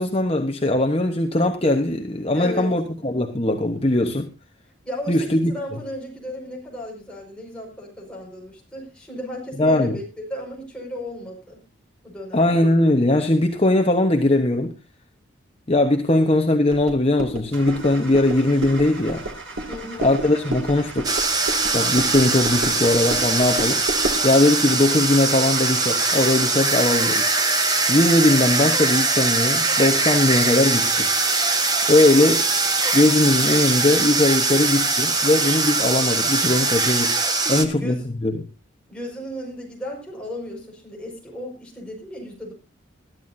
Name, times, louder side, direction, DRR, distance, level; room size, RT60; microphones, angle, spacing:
voice 1, 0.0-4.3 5.1-5.5 9.6-10.0 12.3-14.7 15.7-19.2 20.0-21.1 21.7-23.8 24.2-27.2 27.9-31.1 31.9-32.5 32.9-37.2 37.5-37.9 38.2-38.5, left 1 dB, 30° left, 4 dB, 1.0 m, -20 dB
voice 2, 2.3-2.8 4.8-11.6 12.0-12.4 19.7-20.1 37.4-38.1 38.9-42.5, equal, 5° left, -2 dB, 5.2 m, -35 dB
sound 1, 16.7-24.3, right 2 dB, 90° right, 2.5 m, -32 dB
Car / Engine starting, 17.5-26.8, right 3 dB, 70° right, 6.1 m, -39 dB
sound 2, 21.0-37.6, right 3 dB, 20° right, 1.3 m, -21 dB
21.5 x 12.5 x 2.7 m, 0.30 s
head